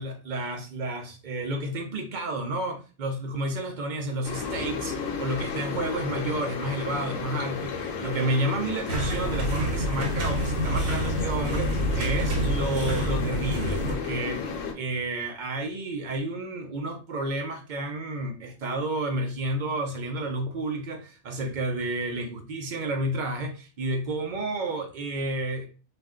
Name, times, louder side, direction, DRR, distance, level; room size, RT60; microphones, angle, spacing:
voice 1, 0.0-25.7, right 2 dB, 60° right, 4 dB, 0.5 m, -31 dB
sound 1, 4.2-14.7, left 5 dB, 80° left, 1.0 m, -33 dB
sound 2, 8.9-14.0, right 1 dB, 90° right, 1.1 m, -28 dB
2.4 x 2.1 x 3.5 m, 0.35 s
omnidirectional pair, 1.3 m